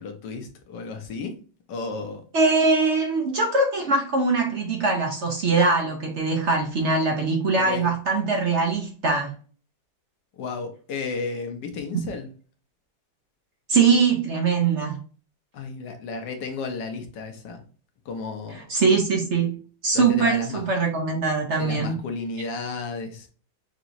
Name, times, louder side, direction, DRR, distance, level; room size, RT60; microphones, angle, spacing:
voice 1, 0.0-1.3 1.7-2.2 7.5-7.9 10.4-12.3 15.5-17.6 18.0-18.6 19.9-20.6 21.6-23.3, left 4 dB, 80° left, 1.5 m, -33 dB
voice 2, 2.3-9.3 13.7-15.0 18.7-19.6 19.8-22.0, right 4 dB, 50° right, 1.0 m, -22 dB
6.0 x 2.9 x 2.6 m
omnidirectional pair, 1.9 m